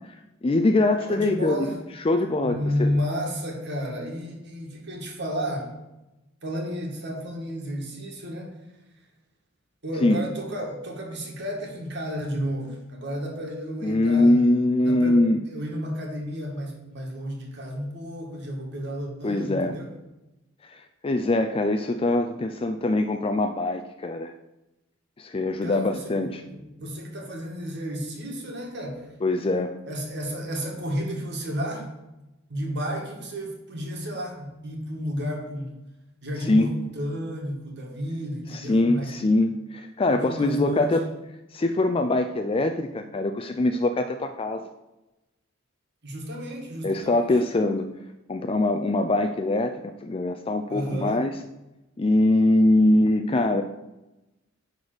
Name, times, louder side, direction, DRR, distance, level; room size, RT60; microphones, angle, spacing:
voice 1, 0.4-1.7 2.0-2.9 10.0-10.2 13.8-15.4 19.2-19.7 20.6-24.3 25.2-26.4 29.2-29.7 36.5-36.7 38.5-41.0 41.5-44.7 46.8-47.9 48.3-51.3 52.0-53.6, left 2 dB, 25° left, 7 dB, 0.4 m, -23 dB
voice 2, 1.1-1.8 2.4-5.7 6.4-8.5 9.8-14.5 14.8-19.9 25.6-26.2 26.5-29.1 29.9-31.9 32.5-35.7 36.2-39.1 40.1-41.1 46.0-47.4 50.7-51.2, equal, 55° right, 0 dB, 2.0 m, -32 dB
9.8 x 4.1 x 6.1 m, 1.0 s
head